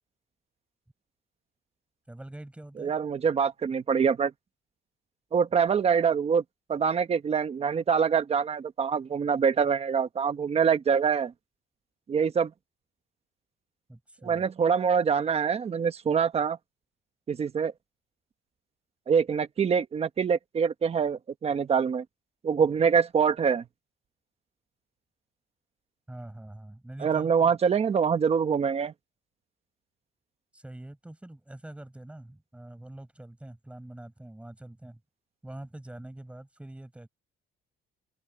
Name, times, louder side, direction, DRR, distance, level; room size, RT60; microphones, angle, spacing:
voice 1, 2.1-2.9 13.9-14.5 26.1-27.5 30.5-35.0 35.4-37.1, right 1 dB, 5° right, 5.7 m, -44 dB
voice 2, 2.8-4.3 5.3-6.4 6.7-11.3 12.1-12.5 14.2-16.6 17.3-17.7 19.1-22.0 22.4-23.6 27.0-28.9, right 6 dB, 30° right, 1.1 m, -25 dB
cardioid pair, 170°, 21 cm